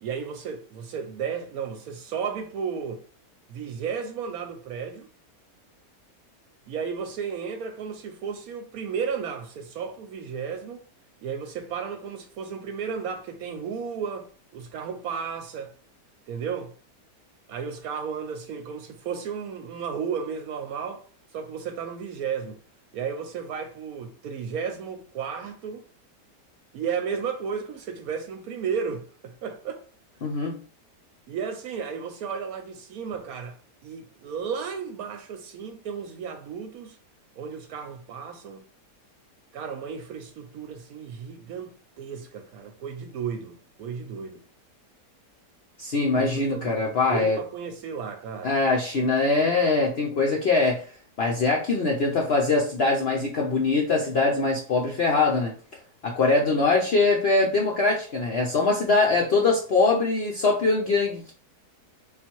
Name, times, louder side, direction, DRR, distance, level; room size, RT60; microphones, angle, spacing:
voice 1, 0.0-3.0 3.5-5.1 6.7-10.8 11.2-15.7 16.3-16.7 17.5-22.6 22.9-25.9 26.7-29.8 31.3-37.0 37.4-38.7 39.5-44.4 46.1-46.7 47.1-48.6, right 6 dB, 70° right, 0.9 m, -33 dB
voice 2, 30.2-30.6 45.8-47.4 48.4-50.9 51.2-55.5 56.0-61.3, left 3 dB, 60° left, 0.6 m, -22 dB
3.5 x 2.5 x 4.4 m
omnidirectional pair, 1.8 m